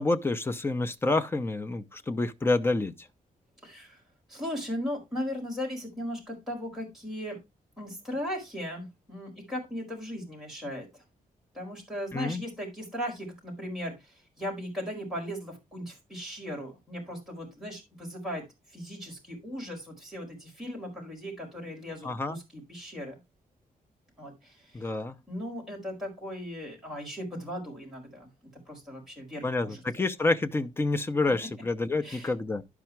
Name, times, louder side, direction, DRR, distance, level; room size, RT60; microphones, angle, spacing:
voice 1, 0.0-3.1 12.1-12.4 22.0-22.4 24.7-25.2 29.4-32.6, left 2 dB, 15° left, 0.7 m, -28 dB
voice 2, 3.6-4.0 4.3-7.4 7.8-11.0 11.5-18.4 18.7-23.1 24.2-24.9 25.3-28.3 28.7-29.8 31.4-31.5 32.0-32.3, equal, ahead, 4.6 m, -37 dB
12.0 x 4.9 x 4.5 m
wide cardioid pair, 175°, 15 cm